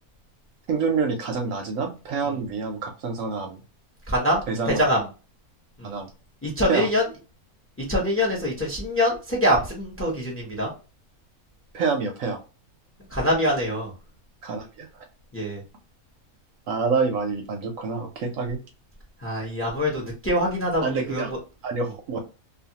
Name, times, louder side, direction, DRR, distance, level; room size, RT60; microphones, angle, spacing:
voice 1, 0.7-3.6 4.5-4.8 5.8-6.1 6.7-6.9 11.7-12.4 14.4-15.0 16.7-18.6 19.4-19.5 20.8-21.3 21.6-22.2, right 4 dB, 70° right, 3 dB, 0.9 m, -27 dB
voice 2, 4.1-4.4 4.7-5.0 5.8-5.9 6.4-7.0 7.9-10.7 13.1-13.9 15.3-15.6 19.2-21.2, equal, 10° left, -1 dB, 0.7 m, -24 dB
2.6 x 2.5 x 2.7 m, 0.32 s
omnidirectional pair, 1.6 m